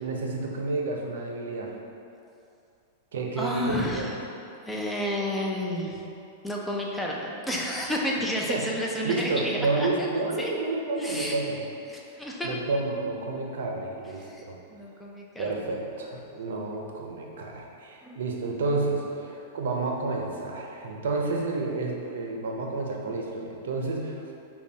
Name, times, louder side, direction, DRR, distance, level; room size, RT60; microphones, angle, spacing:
voice 1, 0.0-1.7 3.1-4.1 8.5-8.7 9.0-11.6 12.4-14.6 15.4-24.3, right 3 dB, 80° right, 0 dB, 0.5 m, -30 dB
voice 2, 3.4-4.2 4.7-6.0 6.4-10.1 10.4-10.5 11.0-11.4 11.9-12.6 14.2-15.5 18.0-18.2, left 1 dB, 5° left, -3 dB, 0.5 m, -31 dB
5.3 x 2.3 x 2.7 m, 2.6 s
hypercardioid pair, 120°, 0 cm